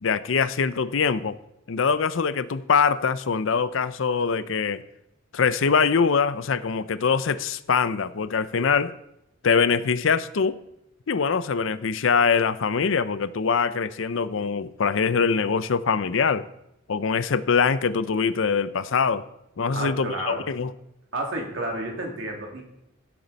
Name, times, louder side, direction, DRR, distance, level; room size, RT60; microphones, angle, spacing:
voice 1, 0.0-1.4 1.7-4.8 5.3-9.0 9.4-10.6 11.1-16.4 16.9-19.2 19.6-20.7, left 5 dB, 70° left, 0.5 m, -23 dB
voice 2, 19.7-20.5 21.1-22.6, right 1 dB, 70° right, 2.6 m, -31 dB
16.5 x 7.4 x 4.1 m
head